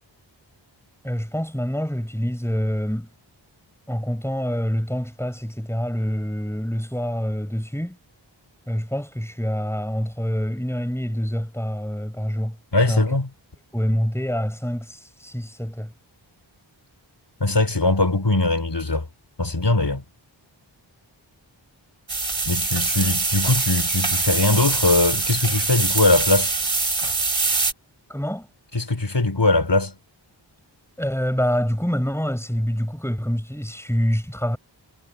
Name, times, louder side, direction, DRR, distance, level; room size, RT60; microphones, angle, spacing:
voice 1, 1.0-3.1 3.9-8.0 8.7-12.6 12.9-13.1 13.7-15.9 28.1-28.5 31.0-34.6, equal, 5° left, 7.6 m, -26 dB
voice 2, 12.7-13.3 17.4-19.1 19.4-20.0 22.5-26.5 28.7-29.9, left 2 dB, 60° left, 4.0 m, -21 dB
sound 1, 22.1-27.7, right 3 dB, 75° right, 3.5 m, -23 dB
wide cardioid pair, 45°, 47 cm